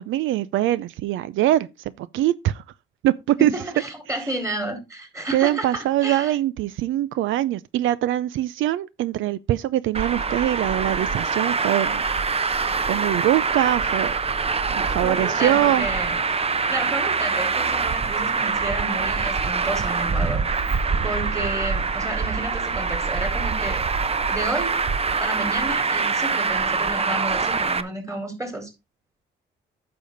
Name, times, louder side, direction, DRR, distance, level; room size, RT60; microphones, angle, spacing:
voice 1, 0.0-2.6 3.0-3.5 4.1-4.3 5.3-12.0 12.9-14.1 14.7-15.9, right 13 dB, 80° right, 0.5 m, -23 dB
voice 2, 3.4-6.3 15.0-16.1 16.7-20.8 21.0-23.8 24.3-24.8 25.2-28.7, right 1 dB, 15° right, 4.3 m, -31 dB
Traffic noise roadway noise, 9.9-27.8, right 4 dB, 30° right, 0.9 m, -24 dB
9.9 x 6.9 x 4.0 m
cardioid pair, 90°, 20 cm